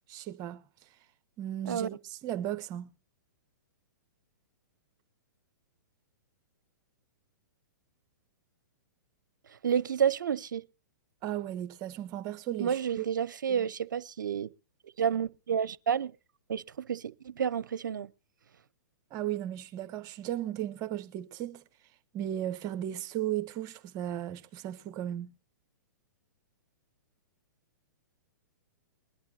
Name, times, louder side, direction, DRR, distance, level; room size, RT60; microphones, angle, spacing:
voice 1, 0.1-0.6 1.4-2.9 11.2-13.1 13.5-13.7 19.1-21.6 22.1-25.3, right 12 dB, 35° right, 1.2 m, -35 dB
voice 2, 9.5-10.6 12.6-14.5 15.0-16.1 16.5-18.1, right 8 dB, 75° right, 0.7 m, -30 dB
21.5 x 11.5 x 2.8 m
hypercardioid pair, 115°, 10 cm